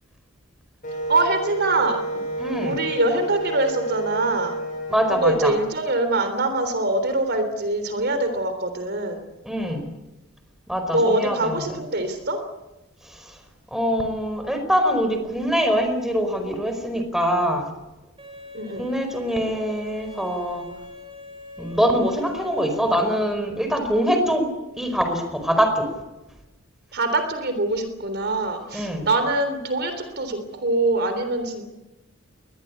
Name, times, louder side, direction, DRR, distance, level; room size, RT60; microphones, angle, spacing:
Wind instrument woodwind instrument, 0.8-5.5, right 2 dB, 40° left, 7.4 m, -30 dB
voice 1, 1.1-2.2 2.6-4.6 5.2-9.2 10.9-12.4 18.5-18.8 26.9-31.6, right 2 dB, 50° right, 8 dB, 3.4 m, -24 dB
voice 2, 2.4-2.8 4.9-5.5 9.4-9.9 10.7-11.7 13.0-13.4 13.7-17.7 18.8-20.6 21.6-24.5 24.8-25.9 28.7-29.1, equal, ahead, 6 dB, 4.9 m, -23 dB
Bowed string instrument, 18.2-23.2, left 3 dB, 25° right, 6.5 m, -42 dB
23.0 x 20.5 x 8.6 m, 1.0 s
head